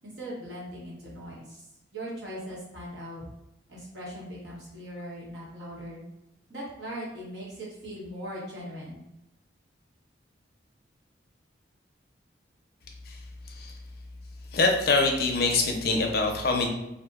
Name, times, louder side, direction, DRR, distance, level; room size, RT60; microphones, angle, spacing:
voice 1, 0.0-1.6 1.9-3.2 3.7-6.0 6.5-9.0, equal, 65° right, -6 dB, 1.2 m, -39 dB
voice 2, 14.5-16.7, left 3 dB, 50° left, 2 dB, 0.5 m, -24 dB
2.6 x 2.1 x 3.5 m, 0.91 s
head